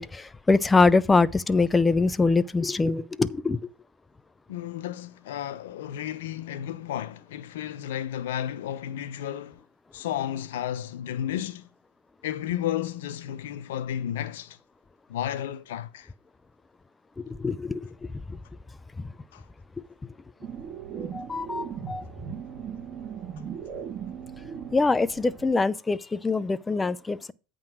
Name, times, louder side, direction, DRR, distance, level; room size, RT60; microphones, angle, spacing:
voice 1, 0.0-3.6 17.2-17.9 21.0-22.0 24.7-27.3, left 3 dB, 15° left, 0.5 m, -24 dB
voice 2, 4.5-9.6 9.9-11.7 12.2-14.6 15.1-16.1 19.3-19.4, left 11 dB, 85° left, 0.7 m, -32 dB
sound 1, 20.4-25.5, right 7 dB, 35° right, 1.6 m, -38 dB
8.8 x 3.8 x 6.1 m
supercardioid pair, 110°, 0 cm